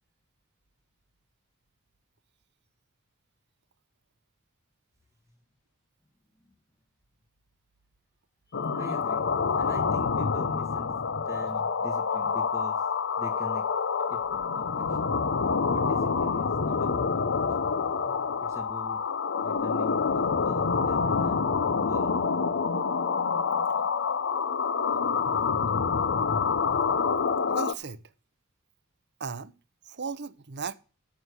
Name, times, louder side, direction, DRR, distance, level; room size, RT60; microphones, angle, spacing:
sound 1, 8.5-27.7, left 5 dB, 55° left, 0.7 m, -27 dB
voice 1, 8.5-9.3 9.6-11.0 11.2-12.9 13.2-13.6 14.1-15.1 15.7-17.4 18.4-19.0 19.4-22.2, left 1 dB, 15° left, 1.2 m, -44 dB
voice 2, 27.5-28.0 29.2-29.5 29.8-30.7, right 5 dB, 50° right, 0.8 m, -36 dB
9.7 x 6.4 x 8.0 m
head